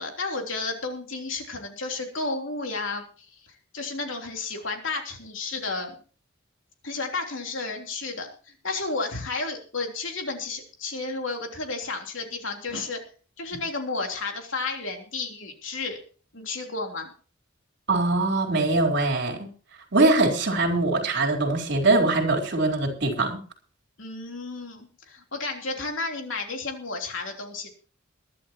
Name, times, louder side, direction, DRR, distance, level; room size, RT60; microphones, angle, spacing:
voice 1, 0.0-3.3 3.7-6.0 6.8-13.0 13.4-16.0 16.3-17.1 24.0-27.7, left 3 dB, 70° left, 2 dB, 3.4 m, -32 dB
voice 2, 17.9-19.5 19.9-23.4, right 2 dB, 60° right, 2 dB, 4.0 m, -22 dB
22.0 x 11.5 x 3.0 m, 0.39 s
head